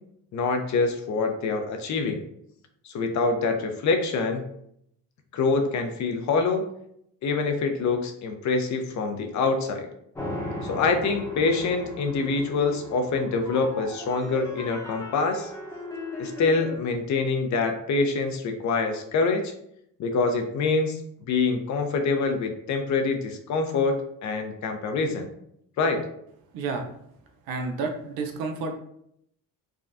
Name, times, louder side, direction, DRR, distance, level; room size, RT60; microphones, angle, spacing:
voice 1, 0.3-2.2 2.8-4.4 5.3-6.6 7.2-9.9 10.6-15.5 16.2-19.5 20.0-24.0 24.2-25.3 25.8-26.0, left 4 dB, 55° left, 5 dB, 0.6 m, -25 dB
sound 1, 10.1-16.8, left 1 dB, 10° left, 0.8 m, -37 dB
voice 2, 26.5-26.9 27.5-28.7, right 4 dB, 85° right, 4 dB, 0.6 m, -30 dB
3.5 x 2.2 x 2.5 m, 0.73 s
cardioid pair, 85°, 36 cm